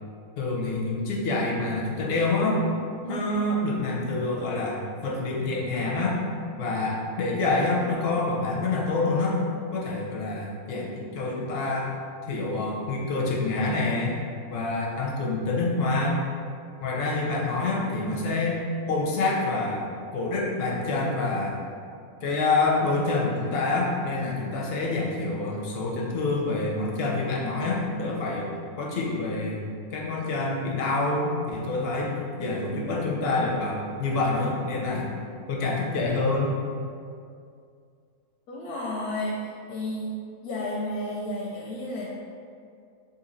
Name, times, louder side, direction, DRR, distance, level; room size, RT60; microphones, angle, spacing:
voice 1, 0.4-2.6 3.0-6.2 6.6-9.4 9.7-11.9 12.3-14.2 14.5-16.2 16.8-18.6 18.9-19.8 20.1-21.6 22.2-28.5 28.8-29.6 29.9-32.1 32.4-35.1 35.5-36.5, left 2 dB, 60° left, -3 dB, 0.7 m, -27 dB
voice 2, 38.5-42.3, left 1 dB, 90° left, -4 dB, 1.1 m, -32 dB
3.0 x 2.7 x 3.8 m, 2.3 s
omnidirectional pair, 1.5 m